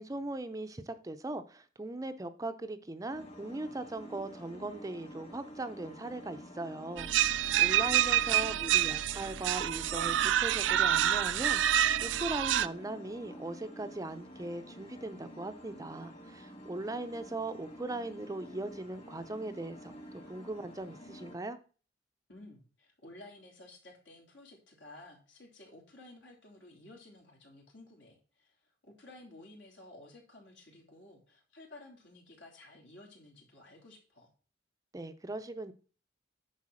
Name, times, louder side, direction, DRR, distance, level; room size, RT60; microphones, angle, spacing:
voice 1, 0.0-21.6 34.9-35.7, right 2 dB, 20° right, 10 dB, 0.5 m, -39 dB
sound 1, 3.1-21.4, equal, 35° left, 1.9 m, -49 dB
sound 2, 7.0-12.7, right 11 dB, 80° right, 0.4 m, -27 dB
voice 2, 7.3-8.6 22.3-34.3, left 2 dB, 75° left, 0 dB, 3.1 m, -54 dB
9.7 x 4.0 x 6.2 m, 0.38 s
head